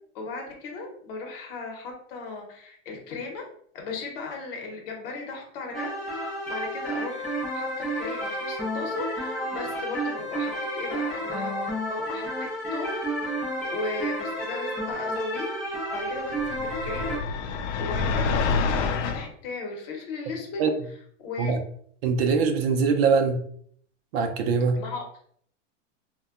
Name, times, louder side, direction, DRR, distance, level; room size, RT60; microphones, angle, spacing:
voice 1, 0.1-3.4 3.7-12.3 12.7-12.9 13.7-17.2 17.5-20.6 21.2-21.5 24.7-25.0, left 3 dB, 50° left, 1 dB, 0.8 m, -37 dB
sound 1, 5.7-17.2, equal, ahead, 0.4 m, -31 dB
sound 2, 16.4-19.3, left 4 dB, 75° left, 0.5 m, -27 dB
voice 2, 22.0-23.4 24.1-24.8, right 5 dB, 55° right, 6 dB, 0.5 m, -22 dB
2.7 x 2.2 x 2.3 m, 0.62 s
supercardioid pair, 155°, 37 cm